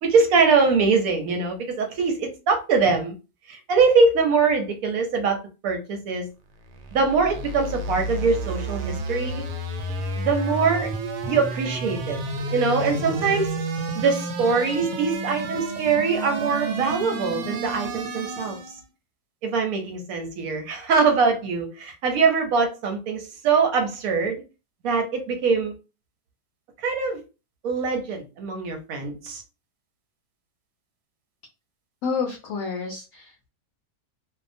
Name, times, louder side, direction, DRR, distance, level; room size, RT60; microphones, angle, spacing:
voice 1, 0.0-3.2 3.5-6.3 6.9-9.4 10.2-10.9 11.3-12.2 12.5-13.6 13.9-18.6 19.4-24.4 24.8-25.7 26.8-27.2 27.6-29.4, right 4 dB, 65° right, 0.9 m, -23 dB
sound 1, 6.6-18.8, right 2 dB, 85° right, 1.2 m, -31 dB
voice 2, 32.0-33.5, left 5 dB, 65° left, 0.8 m, -29 dB
2.7 x 2.1 x 2.5 m
omnidirectional pair, 1.8 m